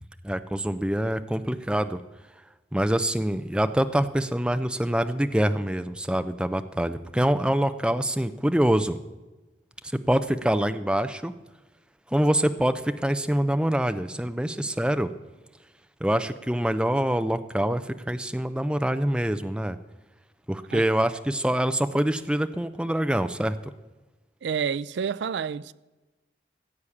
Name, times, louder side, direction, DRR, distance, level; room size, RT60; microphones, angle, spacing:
voice 1, 0.2-2.0 2.7-9.0 9.9-11.3 12.1-15.1 16.0-19.8 20.5-23.6, right 1 dB, 5° right, 0.5 m, -25 dB
voice 2, 24.4-25.7, right 7 dB, 80° right, 0.4 m, -29 dB
14.5 x 8.2 x 7.2 m
head